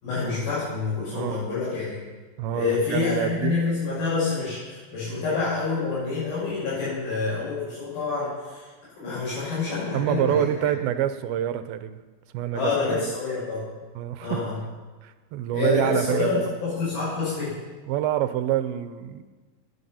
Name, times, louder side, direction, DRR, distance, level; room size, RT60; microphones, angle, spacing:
voice 1, 0.0-2.0 2.5-8.6 9.0-10.5 12.5-13.6 14.2-14.5 15.5-17.5, left 4 dB, 75° left, -10 dB, 8.1 m, -27 dB
voice 2, 1.1-1.5 2.4-3.7 9.9-12.0 12.3-13.1 14.0-14.4 15.0-16.5 17.8-19.2, right 11 dB, 85° right, 10 dB, 2.6 m, -27 dB
19.0 x 10.0 x 5.8 m, 1.4 s
omnidirectional pair, 4.3 m